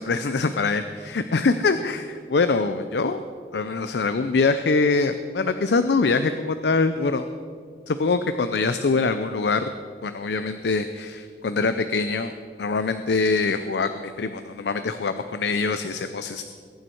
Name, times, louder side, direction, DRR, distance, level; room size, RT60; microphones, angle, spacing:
voice 1, 0.0-2.0 2.3-3.2 3.5-7.3 7.9-9.7 10.0-12.3 12.6-16.4, left 4 dB, 75° left, 10 dB, 0.5 m, -24 dB
21.0 x 9.2 x 4.5 m, 2.1 s
head